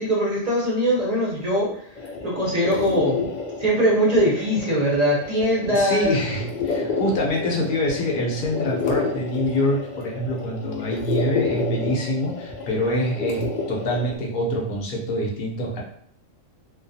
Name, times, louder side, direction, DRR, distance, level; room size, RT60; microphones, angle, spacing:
voice 1, 0.0-1.7 2.2-3.2 3.6-6.1, equal, 45° right, -5 dB, 0.6 m, -21 dB
sound 1, 2.0-14.1, left 4 dB, 85° left, 0.4 m, -30 dB
voice 2, 5.6-15.8, left 1 dB, 50° left, -1 dB, 0.7 m, -25 dB
2.4 x 2.3 x 2.6 m, 0.64 s
omnidirectional pair, 1.3 m